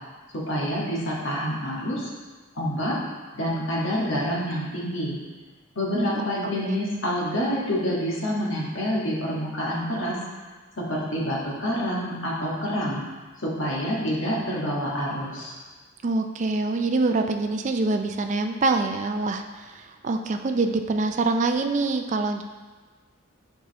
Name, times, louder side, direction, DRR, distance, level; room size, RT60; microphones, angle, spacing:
voice 1, 0.3-2.1 2.5-3.0 3.3-5.2 5.7-10.2 10.8-13.0 13.4-15.6, equal, 65° left, -4 dB, 1.6 m, -27 dB
voice 2, 5.9-6.3 6.7-6.8 16.0-22.4, right 3 dB, 35° right, 6 dB, 0.4 m, -25 dB
7.5 x 5.6 x 3.0 m, 1.4 s
head